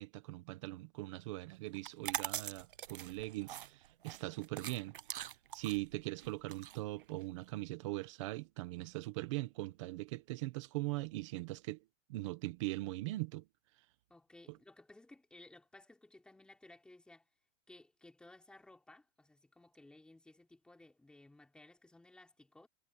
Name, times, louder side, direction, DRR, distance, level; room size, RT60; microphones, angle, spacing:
voice 1, 0.0-4.9 5.5-11.8 12.1-13.5, right 19 dB, 25° right, 1.2 m, -41 dB
sound 1, 1.7-7.5, right 11 dB, 45° right, 0.8 m, -43 dB
voice 2, 14.1-17.3 17.7-22.7, left 2 dB, ahead, 3.5 m, -59 dB
hypercardioid pair, 175°, 38 cm